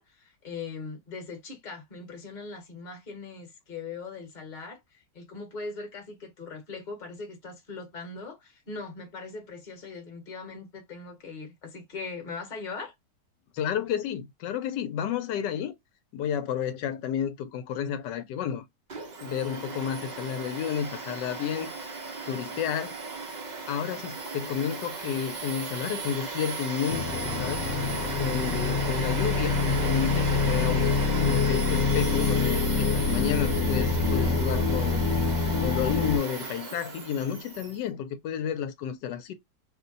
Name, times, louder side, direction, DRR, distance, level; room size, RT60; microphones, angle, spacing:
voice 1, 0.0-12.9, left 4 dB, 35° left, 1.0 m, -40 dB
voice 2, 13.5-15.8 16.1-18.6 19.2-21.7 22.3-23.0 23.7-27.6 28.2-35.0 35.6-39.3, left 8 dB, 85° left, 1.2 m, -31 dB
Domestic sounds home sounds, 18.9-37.8, right 3 dB, 75° right, 0.4 m, -36 dB
sound 1, 26.9-36.2, left 4 dB, 65° left, 0.9 m, -26 dB
2.9 x 2.1 x 3.8 m
omnidirectional pair, 1.8 m